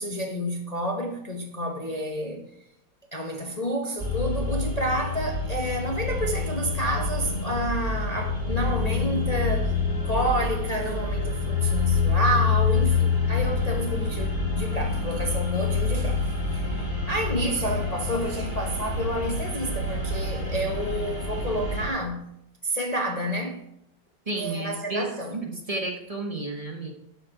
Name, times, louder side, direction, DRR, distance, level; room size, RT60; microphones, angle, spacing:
voice 1, 0.0-2.5 3.1-9.8 10.0-16.2 16.5-22.3 22.6-23.6 24.4-25.4, equal, 40° left, 0.5 m, -29 dB
sound 1, 4.0-21.9, left 4 dB, 10° right, 1.7 m, -27 dB
voice 2, 24.3-26.9, right 2 dB, 25° right, 0.8 m, -32 dB
12.5 x 5.1 x 4.9 m
omnidirectional pair, 2.3 m